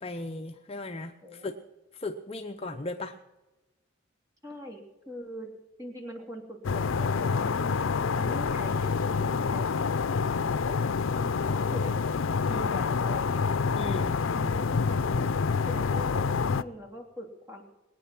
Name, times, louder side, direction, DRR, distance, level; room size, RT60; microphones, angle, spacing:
voice 1, 0.0-1.5 1.9-3.2 12.5-12.8 13.8-14.2, left 2 dB, 30° left, 5 dB, 0.7 m, -37 dB
voice 2, 1.2-1.6 4.4-5.5 5.8-7.6 8.1-10.1 10.4-10.8 11.1-11.9 12.5-13.4 14.3-15.2 15.6-17.6, left 1 dB, 15° right, 1 dB, 3.0 m, -42 dB
sound 1, 6.6-16.6, left 5 dB, 75° left, 0.5 m, -27 dB
21.0 x 9.2 x 6.0 m, 1.1 s
head